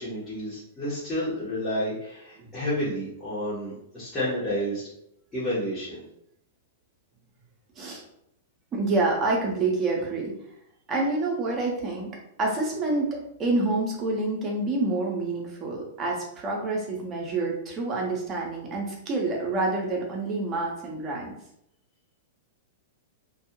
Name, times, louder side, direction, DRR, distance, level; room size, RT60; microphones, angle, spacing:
voice 1, 0.0-4.9 5.3-6.0, equal, 15° left, -11 dB, 1.0 m, -30 dB
voice 2, 8.7-10.3 10.9-12.1 12.4-21.3, right 2 dB, 25° right, -1 dB, 0.8 m, -27 dB
2.6 x 2.3 x 2.9 m, 0.75 s
figure-of-eight pair, 100°, 0 cm